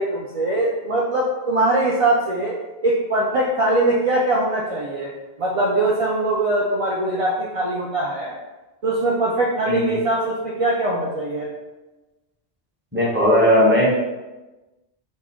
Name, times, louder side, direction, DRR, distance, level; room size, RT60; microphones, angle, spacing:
voice 1, 0.0-2.5 2.8-5.1 5.4-8.3 8.8-11.5, right 2 dB, 50° right, -3 dB, 0.4 m, -21 dB
voice 2, 9.7-10.0 12.9-13.9, equal, 10° right, -6 dB, 1.0 m, -17 dB
4.5 x 2.1 x 4.3 m, 1.1 s
omnidirectional pair, 1.1 m